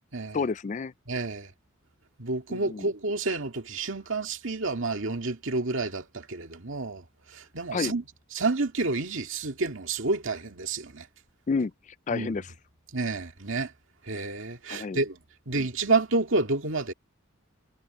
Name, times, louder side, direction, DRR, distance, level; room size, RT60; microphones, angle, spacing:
voice 1, 0.3-0.9 2.5-2.9 7.7-7.9 11.5-12.5 14.7-15.0 15.5-15.7, left 4 dB, 35° left, 0.4 m, -30 dB
voice 2, 1.1-1.5 2.2-8.0 8.3-11.1 12.1-12.4 12.9-13.7 14.0-15.2 15.5-16.9, right 3 dB, 65° right, 2.1 m, -29 dB
head